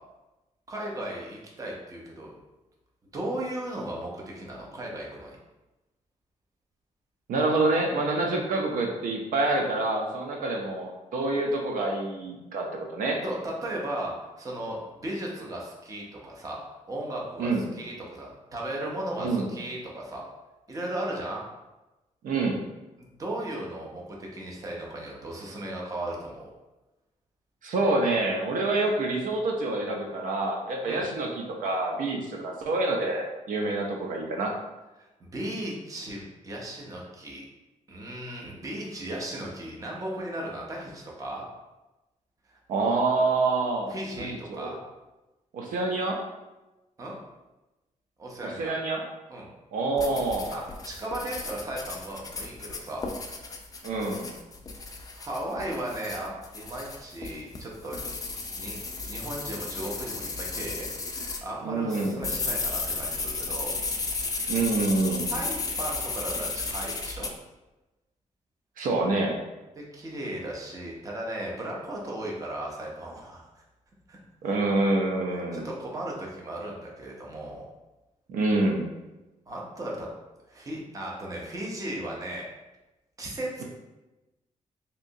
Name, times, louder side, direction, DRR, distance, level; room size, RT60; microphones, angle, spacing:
voice 1, 0.7-2.3 3.1-5.4 13.2-16.6 16.9-20.2 20.7-21.4 23.0-26.5 30.8-31.0 35.0-37.4 37.9-41.4 42.5-42.6 43.9-44.8 47.0-47.2 48.2-48.7 49.3-49.5 50.5-53.1 55.1-58.1 58.6-58.8 59.1-63.8 64.1-64.5 65.3-67.3 69.8-73.6 74.1-74.2 75.3-77.6 79.5-80.1 80.5-82.5 83.2-83.6, right 1 dB, 25° right, -2 dB, 0.6 m, -36 dB
voice 2, 7.3-13.2 17.4-17.6 19.2-19.5 22.2-22.6 27.6-34.5 42.7-44.7 45.5-46.2 48.6-49.0 49.7-50.5 53.8-54.3 61.6-62.2 64.5-65.2 68.8-69.4 74.4-75.7 78.3-78.9, right 2 dB, 85° right, 1 dB, 0.5 m, -27 dB
sound 1, 50.0-61.4 61.9-67.3, left 3 dB, 25° left, 0.3 m, -34 dB
3.2 x 2.8 x 2.7 m, 1.0 s
wide cardioid pair, 140°, 13 cm